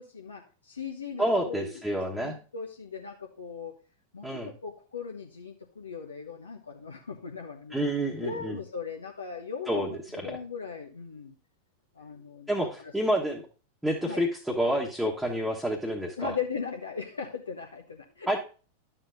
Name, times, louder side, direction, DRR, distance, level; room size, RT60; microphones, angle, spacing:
voice 1, 0.0-3.7 4.1-7.8 8.2-11.4 12.0-12.9 14.0-14.2 16.2-18.3, left 6 dB, 75° left, 1 dB, 1.0 m, -38 dB
voice 2, 1.2-2.4 4.2-4.5 7.7-8.6 9.7-9.9 10.3-10.4 12.5-12.7 12.9-13.4 13.8-16.3 18.3-18.4, equal, ahead, -3 dB, 1.3 m, -28 dB
12.0 x 7.5 x 2.6 m, 0.36 s
figure-of-eight pair, 90°, 0 cm